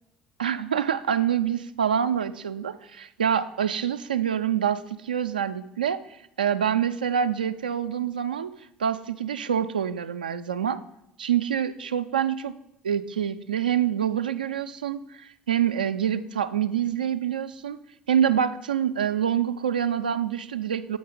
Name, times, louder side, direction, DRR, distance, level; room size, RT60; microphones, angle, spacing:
voice 1, 0.4-6.0 6.4-8.5 8.8-10.8 11.2-12.6 12.8-17.8 18.1-21.0, right 9 dB, 80° right, 11 dB, 0.3 m, -26 dB
6.8 x 4.6 x 6.7 m, 0.79 s
figure-of-eight pair, 55°, 5 cm